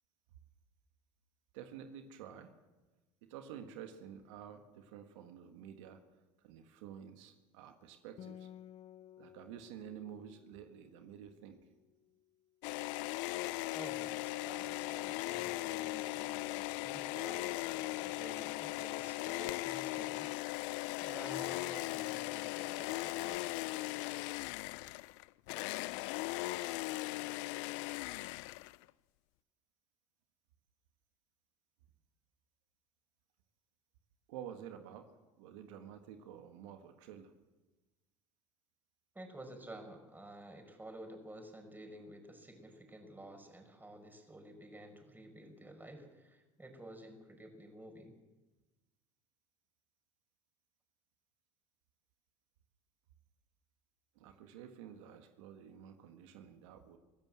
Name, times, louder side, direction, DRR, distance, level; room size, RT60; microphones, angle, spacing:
voice 1, 1.5-2.5 3.2-6.0 6.4-8.5 9.2-11.6 34.3-35.1 35.4-37.3 54.2-57.0, right 9 dB, 80° right, 6 dB, 1.9 m, -50 dB
Acoustic guitar, 8.2-11.9, left 10 dB, 45° left, 0.8 m, -55 dB
sound 1, 12.6-28.9, left 20 dB, 75° left, 0.6 m, -38 dB
voice 2, 13.7-20.3 21.0-23.5 39.1-48.1, right 1 dB, 10° right, 5 dB, 5.5 m, -51 dB
25.0 x 15.0 x 7.7 m, 1.2 s
supercardioid pair, 85°, 15 cm